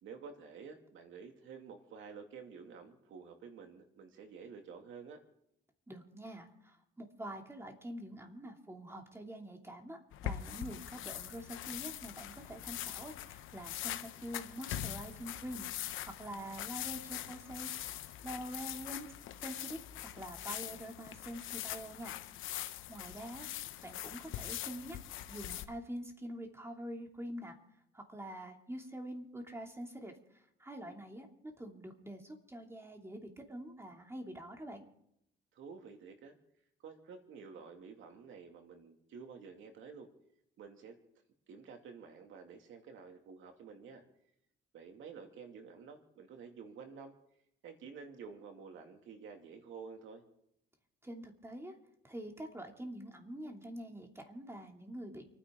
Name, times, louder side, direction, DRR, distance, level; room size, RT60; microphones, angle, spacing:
voice 1, 0.0-5.2 35.5-36.4 36.8-40.1 40.6-41.0 41.5-44.0 44.7-47.1 47.6-50.2, right 5 dB, 80° right, 4 dB, 2.6 m, -50 dB
voice 2, 5.9-15.7 16.0-17.7 18.2-19.1 19.4-22.1 22.5-23.5 23.8-25.0 25.3-27.5 27.9-34.8 51.0-51.7 52.0-55.2, right 1 dB, 15° right, 2 dB, 2.9 m, -46 dB
sound 1, 10.1-25.6, left 12 dB, 85° left, 0.9 m, -43 dB
29.5 x 10.0 x 3.9 m, 0.76 s
cardioid pair, 90°, 20 cm